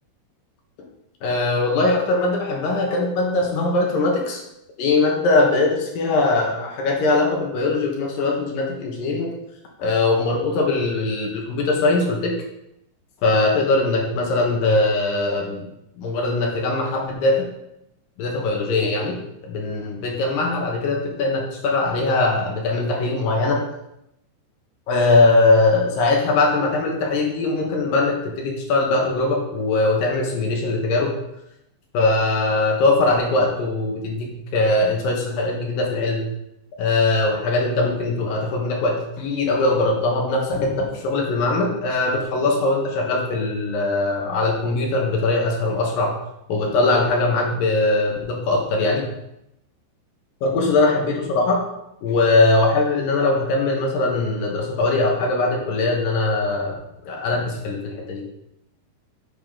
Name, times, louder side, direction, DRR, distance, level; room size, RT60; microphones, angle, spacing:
voice 1, 1.2-4.4 4.8-9.3 9.8-12.4 13.2-15.7 16.0-17.5 18.2-23.6 24.9-31.1 31.9-36.2 36.8-46.1 46.5-49.1 50.4-51.6 52.0-56.7 57.0-58.2, left 2 dB, 65° left, -1 dB, 2.5 m, -21 dB
9.2 x 7.1 x 3.8 m, 0.83 s
omnidirectional pair, 5.4 m